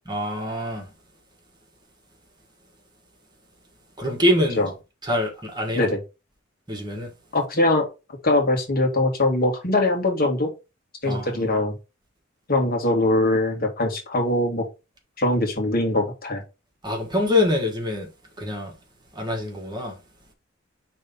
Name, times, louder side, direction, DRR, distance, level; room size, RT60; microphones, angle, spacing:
voice 1, 0.1-0.8 4.0-4.6 5.1-5.8 6.7-7.1 11.0-11.4 16.8-18.1 18.4-18.7 19.2-19.9, left 1 dB, 20° right, 1.7 m, -24 dB
voice 2, 7.3-7.9 8.2-10.5 11.0-11.8 12.5-14.6 15.2-16.4, left 2 dB, 50° left, 1.8 m, -22 dB
5.5 x 3.4 x 5.3 m
head